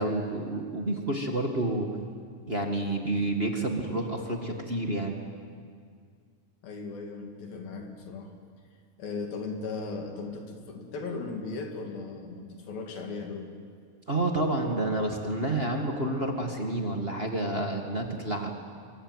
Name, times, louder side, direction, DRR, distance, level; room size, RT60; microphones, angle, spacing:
voice 1, 0.0-1.9 2.5-5.2 14.1-18.5, right 2 dB, 25° right, 2 dB, 1.3 m, -29 dB
voice 2, 6.6-8.3 9.0-13.5, left 4 dB, 80° left, 3 dB, 4.5 m, -37 dB
29.5 x 24.0 x 8.1 m, 2.1 s
omnidirectional pair, 4.1 m